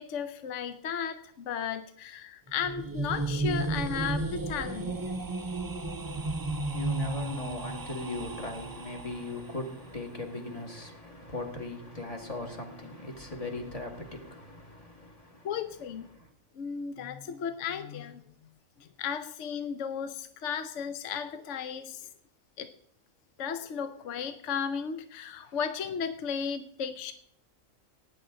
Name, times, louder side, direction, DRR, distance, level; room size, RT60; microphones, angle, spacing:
voice 1, 0.0-5.0 15.4-16.1 16.6-18.2 18.8-22.1 22.6-22.7 23.4-27.1, left 7 dB, 65° left, 1.1 m, -35 dB
sound 1, 2.5-9.5, right 2 dB, 30° right, 0.4 m, -33 dB
voice 2, 6.0-15.5 16.1-16.3, left 2 dB, 25° left, 2.2 m, -39 dB
18.0 x 10.0 x 3.9 m
omnidirectional pair, 1.4 m